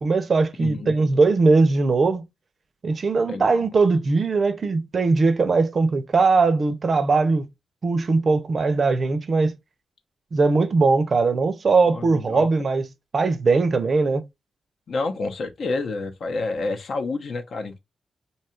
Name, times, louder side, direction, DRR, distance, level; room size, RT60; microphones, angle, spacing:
voice 1, 0.0-2.3 2.8-7.5 7.8-9.5 10.3-12.9 13.1-14.2, right 4 dB, 45° right, 0.5 m, -20 dB
voice 2, 0.6-1.0 3.3-3.7 11.9-12.5 14.9-17.8, left 3 dB, 60° left, 0.7 m, -29 dB
2.8 x 2.4 x 4.2 m
wide cardioid pair, 125°, 0 cm